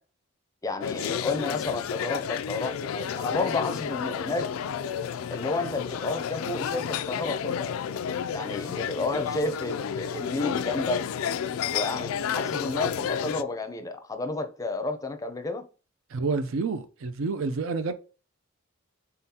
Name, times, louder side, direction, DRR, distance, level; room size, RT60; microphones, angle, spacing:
voice 1, 0.6-4.5 5.3-7.8 8.3-11.1 11.7-15.6, left 3 dB, 15° left, 0.5 m, -31 dB
sound 1, 0.8-13.4, left 8 dB, 80° left, 0.3 m, -31 dB
voice 2, 16.1-17.9, right 4 dB, 70° right, 0.5 m, -29 dB
3.9 x 3.8 x 2.8 m
head